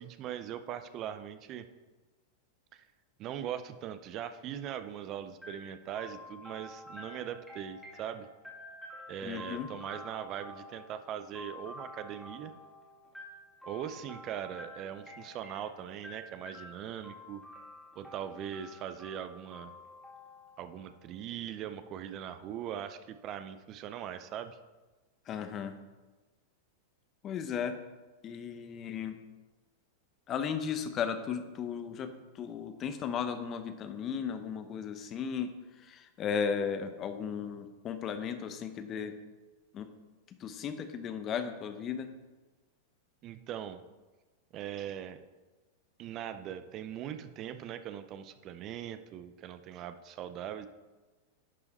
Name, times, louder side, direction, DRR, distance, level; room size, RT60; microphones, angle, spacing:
voice 1, 0.0-1.7 2.7-2.8 3.2-8.3 9.1-12.5 13.7-17.4 18.0-19.7 20.6-24.6 43.2-43.8 44.5-45.2 46.0-50.7, right 10 dB, 40° right, 10 dB, 0.5 m, -40 dB
sound 1, 5.4-21.2, left 1 dB, ahead, 2.0 m, -50 dB
voice 2, 9.2-9.7 25.3-25.7 27.2-27.8 28.2-29.2 30.3-35.5 35.8-39.2 39.7-39.9 40.4-42.1, left 7 dB, 35° left, 9 dB, 0.8 m, -35 dB
11.0 x 4.7 x 4.1 m, 1.2 s
hypercardioid pair, 120°, 0 cm